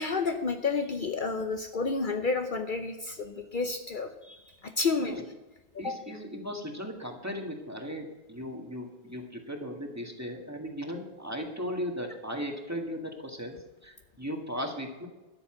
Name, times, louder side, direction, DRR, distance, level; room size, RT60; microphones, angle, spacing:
voice 1, 0.0-5.2 5.8-6.0, left 4 dB, 55° left, 6 dB, 0.9 m, -30 dB
voice 2, 5.8-15.1, equal, 15° right, 2 dB, 1.8 m, -37 dB
12.5 x 7.0 x 7.8 m, 1.1 s
omnidirectional pair, 1.1 m